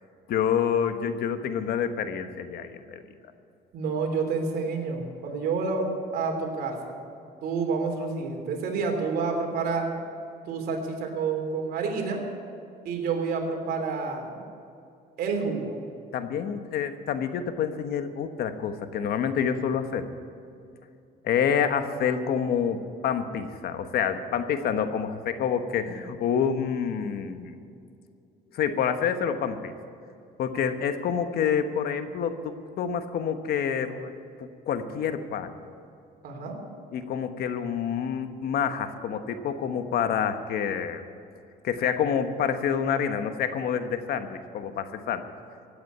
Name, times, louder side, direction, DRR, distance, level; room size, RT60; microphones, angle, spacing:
voice 1, 0.3-3.1 16.1-20.1 21.2-27.5 28.5-29.7 30.4-34.1 34.4-35.5 36.9-41.0 41.6-45.3, left 7 dB, 65° left, 9 dB, 1.2 m, -28 dB
voice 2, 3.7-7.0 7.4-9.9 10.5-12.2 12.8-14.4 15.2-15.8 36.2-36.6, right 4 dB, 65° right, 3 dB, 3.2 m, -29 dB
16.5 x 8.7 x 9.4 m, 2.5 s
cardioid pair, 110°, 17 cm